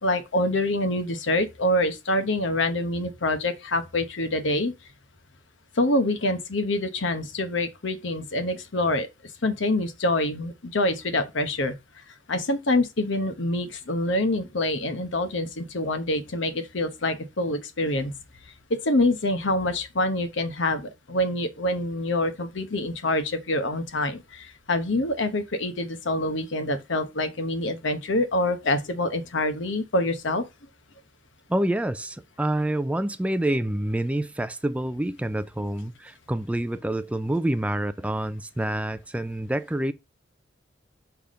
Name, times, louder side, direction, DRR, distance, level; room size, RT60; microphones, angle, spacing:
voice 1, 0.0-4.7 5.7-9.1 9.4-18.1 18.7-30.5, left 1 dB, 80° left, 1.0 m, -26 dB
voice 2, 31.5-39.9, right 1 dB, 5° right, 0.3 m, -27 dB
5.8 x 3.5 x 5.0 m
head